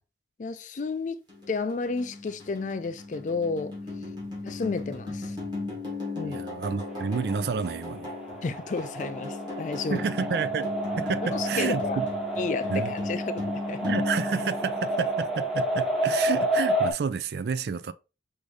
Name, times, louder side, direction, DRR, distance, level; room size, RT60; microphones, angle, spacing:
voice 1, 0.4-1.2 1.5-3.7 4.4-5.4 6.2-6.4 8.4-10.0 11.3-12.0 12.4-13.4 13.7-13.8, left 4 dB, 45° left, 0.4 m, -31 dB
sound 1, 1.3-15.5, left 2 dB, 25° right, 1.6 m, -36 dB
voice 2, 6.2-8.1 9.9-12.1 12.7-12.9 13.8-17.9, right 5 dB, 65° right, 0.4 m, -30 dB
sound 2, 6.9-16.9, right 1 dB, ahead, 0.8 m, -30 dB
4.8 x 2.7 x 3.3 m
head